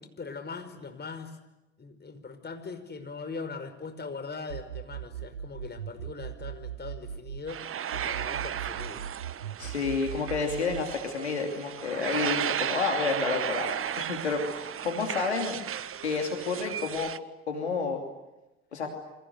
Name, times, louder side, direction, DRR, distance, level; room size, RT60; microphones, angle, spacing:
voice 1, 0.2-1.4 1.8-7.7 7.9-9.0, left 4 dB, 30° left, 8 dB, 5.4 m, -40 dB
sound 1, 4.5-7.5 7.9-10.9, right 9 dB, 90° right, 0.9 m, -39 dB
sound 2, 7.5-17.2, right 9 dB, 40° right, 1.3 m, -34 dB
voice 2, 9.6-15.6 16.0-17.1 17.5-18.0 18.7-18.9, left 4 dB, 90° left, 4 dB, 2.9 m, -30 dB
28.5 x 25.0 x 8.2 m, 0.99 s
figure-of-eight pair, 55°, 32 cm